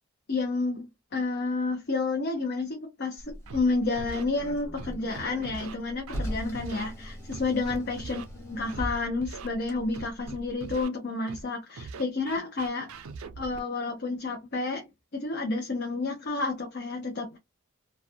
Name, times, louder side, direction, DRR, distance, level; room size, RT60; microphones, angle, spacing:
voice 1, 0.3-12.9 13.4-14.9 15.1-17.4, left 3 dB, 50° left, 0.5 m, -30 dB
Car, 3.2-10.8, equal, 15° left, 0.8 m, -40 dB
Scratching (performance technique), 3.5-3.6 4.0-4.2 4.8-5.7 6.1-6.3 6.6-6.9 7.3-8.2 8.7-8.8 9.2-9.5 9.9-10.9 11.3-11.4 11.8-13.6, right 4 dB, 75° right, 0.5 m, -41 dB
2.3 x 2.1 x 2.6 m
head